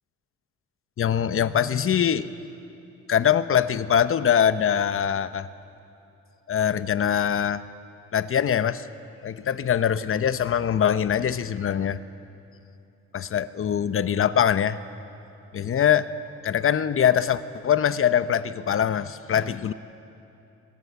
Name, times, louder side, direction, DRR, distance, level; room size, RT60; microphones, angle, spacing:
voice 1, 1.0-2.3 3.1-5.5 6.5-7.6 8.1-8.9 9.2-12.0 13.1-14.8 15.5-16.1 16.4-19.7, left 9 dB, 45° left, 13 dB, 0.9 m, -23 dB
22.5 x 21.0 x 7.1 m, 2.7 s
cardioid pair, 90°, 30 cm